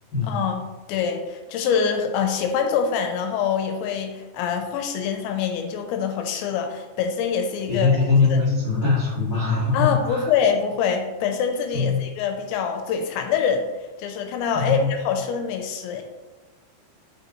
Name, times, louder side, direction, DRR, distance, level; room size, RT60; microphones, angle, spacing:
voice 1, 0.2-0.6 0.9-8.0 8.3-8.4 9.7-13.7 14.0-16.0, left 6 dB, 85° left, 4 dB, 2.9 m, -25 dB
voice 2, 7.7-10.3 11.7-12.0 14.5-14.9, left 4 dB, 65° left, -10 dB, 1.1 m, -21 dB
6.3 x 5.2 x 3.0 m, 1.2 s
omnidirectional pair, 5.3 m